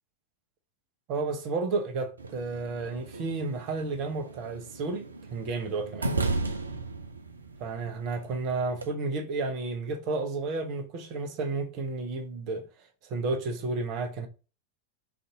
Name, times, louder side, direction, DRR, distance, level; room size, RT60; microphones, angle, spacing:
voice 1, 1.1-5.0 5.3-6.1 7.6-12.6 13.0-14.3, right 3 dB, 40° right, 0.7 m, -32 dB
sound 1, 2.2-8.9, right 3 dB, 75° right, 0.4 m, -36 dB
2.6 x 2.5 x 3.7 m
figure-of-eight pair, 90°, 0 cm